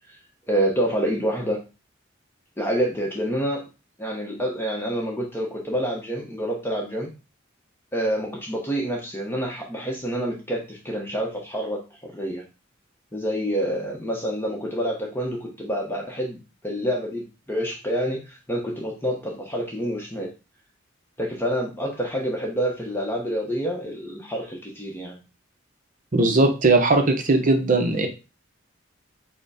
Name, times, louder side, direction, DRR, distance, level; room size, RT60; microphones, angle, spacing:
voice 1, 0.5-1.6 2.6-3.7 4.0-7.1 7.9-12.4 13.1-20.3 21.2-25.2, equal, 10° left, -1 dB, 0.8 m, -27 dB
voice 2, 26.1-28.1, right 2 dB, 40° right, 5 dB, 0.7 m, -19 dB
4.9 x 2.1 x 4.8 m, 0.29 s
head